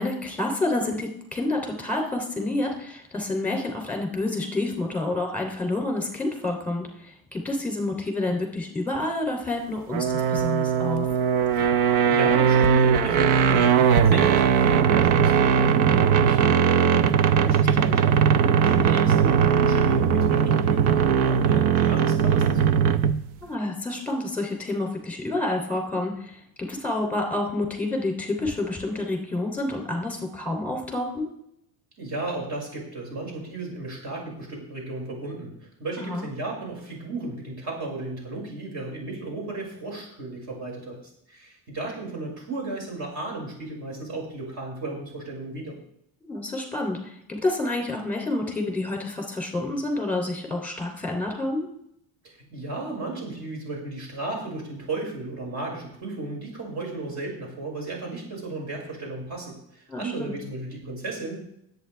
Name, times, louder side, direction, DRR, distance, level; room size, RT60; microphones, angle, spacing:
voice 1, 0.0-11.1 17.4-17.9 23.4-31.3 36.0-36.2 46.2-51.7 59.9-60.4, left 2 dB, 5° left, 3 dB, 3.1 m, -29 dB
sound 1, 9.9-23.3, right 7 dB, 80° right, 0.9 m, -20 dB
voice 2, 11.8-22.9 32.0-35.5 35.8-41.0 41.3-45.7 52.2-61.4, right 2 dB, 45° right, -1 dB, 5.9 m, -34 dB
20.5 x 8.6 x 3.4 m, 0.74 s
cardioid pair, 165°, 38 cm